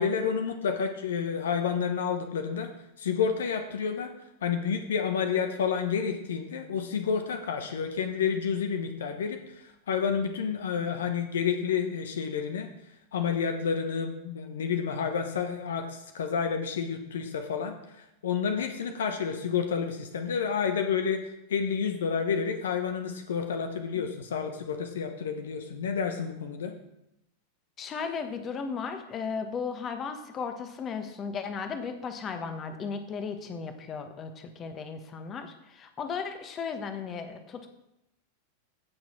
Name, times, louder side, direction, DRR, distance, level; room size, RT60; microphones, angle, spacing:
voice 1, 0.0-2.7 3.0-4.1 4.4-12.7 13.1-26.7, left 6 dB, 65° left, 7 dB, 1.1 m, -30 dB
voice 2, 27.8-37.7, left 5 dB, 25° left, 8 dB, 1.3 m, -35 dB
16.0 x 6.2 x 4.5 m, 0.86 s
figure-of-eight pair, 90°, 0 cm